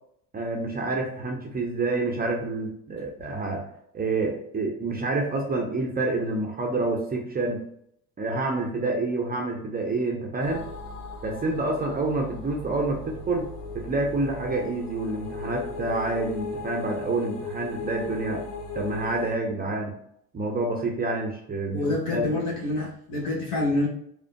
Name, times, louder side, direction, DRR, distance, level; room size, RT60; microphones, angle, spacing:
voice 1, 0.3-3.6 3.9-7.6 8.2-10.7 11.2-13.5 13.7-18.4 18.7-19.9 20.3-21.8 22.1-22.3, right 2 dB, 20° right, 1 dB, 0.7 m, -28 dB
sound 1, 10.4-19.3, left 3 dB, 85° left, 0.8 m, -38 dB
voice 2, 21.7-23.9, left 2 dB, 55° left, -4 dB, 1.3 m, -27 dB
4.9 x 2.1 x 2.3 m, 0.69 s
hypercardioid pair, 75°, 44 cm